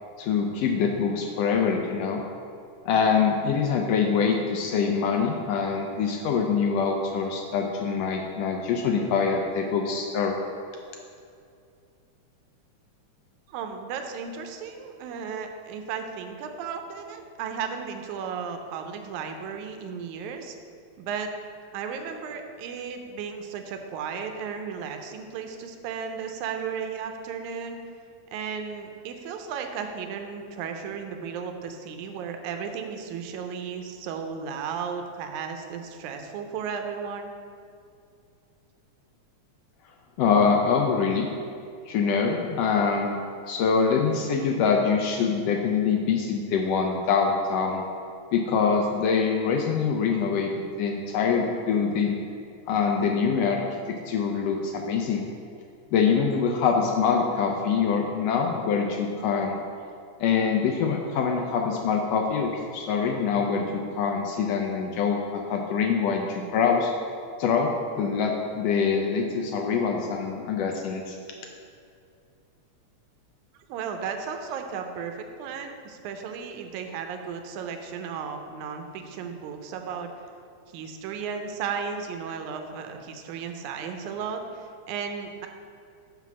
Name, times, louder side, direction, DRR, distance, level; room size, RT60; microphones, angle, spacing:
voice 1, 0.2-2.2 2.9-10.4 40.2-41.3 41.9-43.2 43.5-47.8 48.3-50.5 50.8-52.2 52.7-53.6 53.9-55.2 55.9-59.6 60.2-63.7 63.9-66.9 67.4-67.7 68.0-71.2, left 6 dB, 80° left, 2 dB, 1.5 m, -24 dB
voice 2, 13.5-20.6 21.0-21.3 21.7-27.8 28.3-37.3 73.7-80.1 80.7-85.5, right 6 dB, 85° right, 5 dB, 2.1 m, -34 dB
5.8 x 5.7 x 6.0 m, 2.4 s
omnidirectional pair, 3.3 m